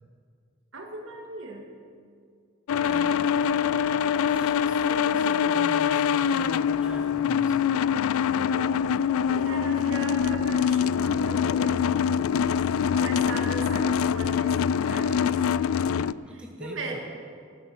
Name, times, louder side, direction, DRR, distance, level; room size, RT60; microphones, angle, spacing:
voice 1, 0.7-1.7 8.4-12.0 12.9-15.7 16.6-17.0, right 2 dB, 65° right, 1 dB, 2.3 m, -38 dB
sound 1, 2.7-16.1, left 7 dB, 90° left, 0.3 m, -24 dB
voice 2, 2.8-3.2 4.2-7.6 16.2-17.0, equal, 5° right, 0 dB, 1.2 m, -42 dB
15.5 x 12.5 x 6.2 m, 2.2 s
head